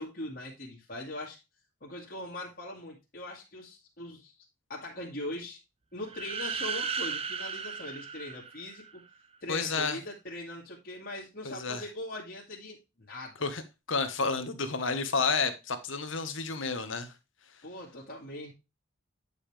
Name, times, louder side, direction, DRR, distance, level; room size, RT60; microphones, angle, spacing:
voice 1, 0.0-1.4 1.8-4.3 4.7-5.6 5.9-9.0 9.4-12.8 13.1-13.5 17.6-18.5, left 1 dB, 45° left, 2.1 m, -41 dB
sound 1, 6.1-9.0, right 6 dB, 25° right, 0.7 m, -35 dB
voice 2, 9.5-10.0 11.4-11.8 13.4-13.6 13.9-17.1, left 4 dB, 65° left, 1.3 m, -30 dB
9.7 x 5.4 x 3.4 m
head